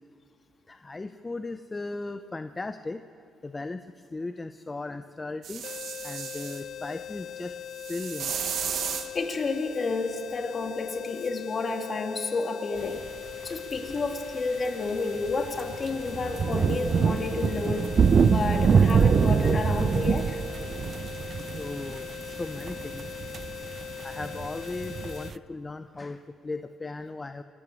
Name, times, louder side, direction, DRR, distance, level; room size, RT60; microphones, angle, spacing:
voice 1, 0.7-3.0 3.4-5.7 6.0-7.5 7.9-8.5 21.5-23.3 24.0-27.4, left 3 dB, 20° left, 9 dB, 0.7 m, -37 dB
sound 1, 5.4-6.6 7.8-9.1 11.2-11.3, right 8 dB, 65° right, 1.4 m, -33 dB
sound 2, 5.6-25.3, left 10 dB, 60° left, 0.4 m, -41 dB
voice 2, 9.1-13.0 13.4-20.4, left 3 dB, 40° left, 4 dB, 2.4 m, -30 dB
sound 3, 13.8-13.9 15.3-25.3, right 6 dB, 45° right, 0.5 m, -24 dB
26.5 x 12.0 x 8.6 m, 2.4 s
cardioid pair, 90°, 0 cm